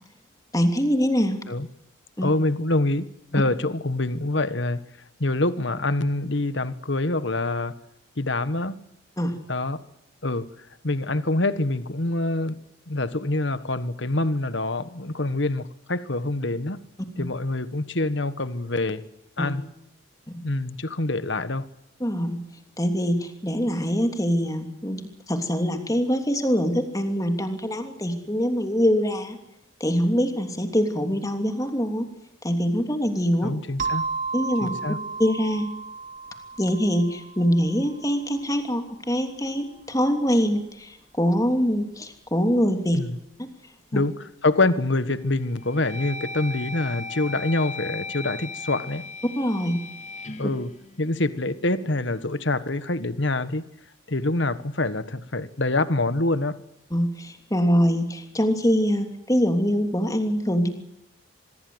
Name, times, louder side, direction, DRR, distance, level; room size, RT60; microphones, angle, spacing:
voice 1, 0.5-1.4 2.2-2.3 9.2-9.4 17.2-17.3 19.4-19.5 20.3-20.4 22.0-22.4 22.8-29.4 29.8-32.1 32.4-33.5 34.3-34.7 35.2-35.7 36.6-43.0 43.4-43.5 43.9-44.0 49.4-49.8 56.9-60.7, equal, 15° left, 6 dB, 3.1 m, -24 dB
voice 2, 2.2-3.1 3.3-4.8 5.2-7.8 8.2-8.8 9.5-9.8 10.2-10.5 10.8-12.6 12.9-16.8 17.2-19.0 19.4-19.6 20.4-21.7 33.4-34.1 34.6-35.0 42.9-43.2 43.9-49.0 50.4-50.7 51.0-53.6 54.1-56.6, left 2 dB, 60° left, 14 dB, 1.5 m, -25 dB
sound 1, 33.8-38.2, right 4 dB, 35° right, 2.9 m, -33 dB
sound 2, 44.8-45.0 45.5-51.6, left 3 dB, 35° left, 2.1 m, -37 dB
25.5 x 21.5 x 8.1 m, 0.82 s
head